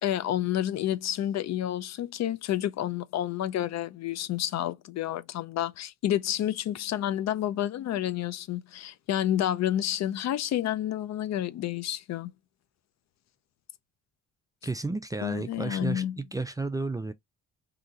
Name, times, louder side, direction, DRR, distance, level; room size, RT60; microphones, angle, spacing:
voice 1, 0.0-12.3 15.2-16.2, left 12 dB, 60° left, 0.5 m, -29 dB
voice 2, 14.6-17.1, right 3 dB, 10° right, 0.3 m, -32 dB
2.8 x 2.5 x 3.7 m
cardioid pair, 90°, 30 cm